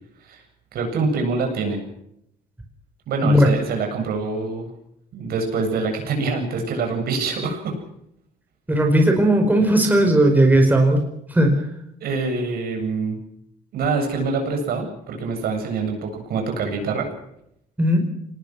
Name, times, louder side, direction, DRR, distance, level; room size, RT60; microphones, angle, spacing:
voice 1, 0.7-1.8 3.1-4.7 5.1-7.7 12.0-13.2 13.7-17.1, right 4 dB, 65° right, 3 dB, 7.9 m, -25 dB
voice 2, 3.2-3.5 8.7-11.0 11.3-11.5 17.8-18.0, right 1 dB, 10° right, 3 dB, 5.0 m, -16 dB
25.5 x 19.5 x 6.3 m, 0.76 s
cardioid pair, 110°, 17 cm